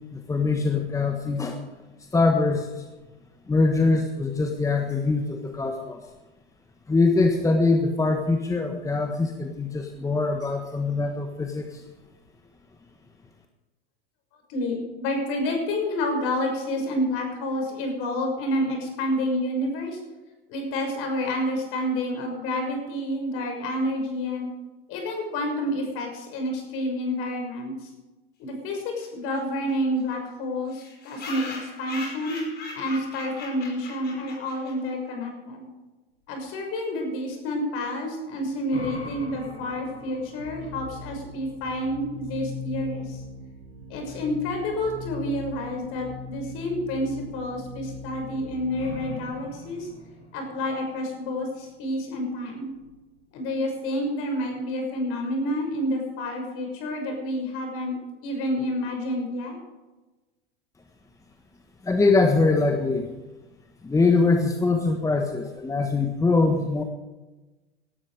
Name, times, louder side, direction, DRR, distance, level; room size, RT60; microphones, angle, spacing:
voice 1, 0.1-1.6 2.1-2.8 3.5-6.0 6.9-11.8 61.8-63.1 63.8-66.8, left 3 dB, 10° left, 4 dB, 1.5 m, -23 dB
voice 2, 14.5-20.0 20.5-24.5 24.9-27.9 28.4-32.4 32.7-35.7 36.3-43.2 43.9-49.9 50.3-52.7 53.3-59.6, left 1 dB, 50° left, 3 dB, 6.3 m, -29 dB
OF like laugh, 29.0-29.1 29.3-29.4 29.7-29.8 30.0-30.1 30.7-34.9, left 3 dB, 35° left, 5.5 m, -39 dB
sound 1, 38.3-45.0 48.3-48.4 48.8-53.1, left 1 dB, 80° left, 6.0 m, -44 dB
sound 2, 40.4-49.0, left 3 dB, 80° right, 5.2 m, -39 dB
18.0 x 13.5 x 5.0 m, 1.2 s
figure-of-eight pair, 85°, 30 cm